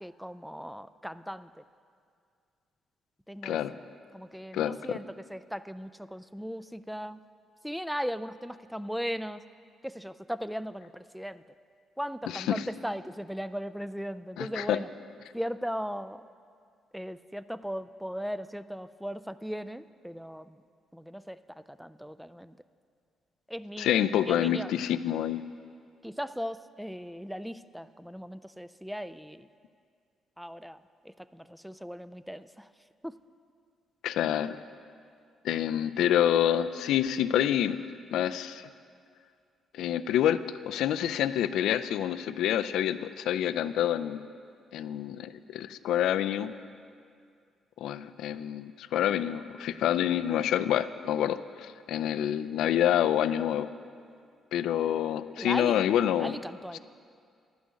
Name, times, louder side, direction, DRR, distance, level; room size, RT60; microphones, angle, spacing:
voice 1, 0.0-1.6 3.3-7.2 7.6-9.4 9.8-11.4 12.0-14.9 15.3-16.2 16.9-20.6 20.9-22.6 23.5-23.9 24.3-24.7 26.0-29.5 30.4-32.7 33.0-33.1 55.4-55.8 56.2-56.8, equal, ahead, 14 dB, 0.3 m, -38 dB
voice 2, 3.4-3.7 4.5-5.0 12.3-12.6 14.4-14.8 23.8-25.4 34.0-34.6 35.4-37.8 38.1-38.7 39.7-40.4 40.7-44.2 44.7-46.5 47.8-53.7 54.5-56.4 56.7-56.8, left 11 dB, 85° left, 13 dB, 0.4 m, -27 dB
11.0 x 6.3 x 8.3 m, 2.3 s
cardioid pair, 90°, 0 cm